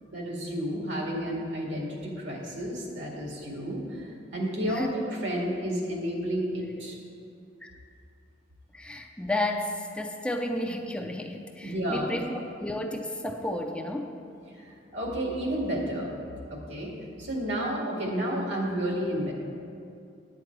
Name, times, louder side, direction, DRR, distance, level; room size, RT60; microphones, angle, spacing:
voice 1, 0.1-7.0 11.6-12.3 14.5-16.1 16.5-16.9 17.2-19.3, equal, 75° right, -2 dB, 2.1 m, -31 dB
voice 2, 8.7-14.1, left 1 dB, 5° left, 3 dB, 0.5 m, -32 dB
9.7 x 8.7 x 4.6 m, 2.5 s
head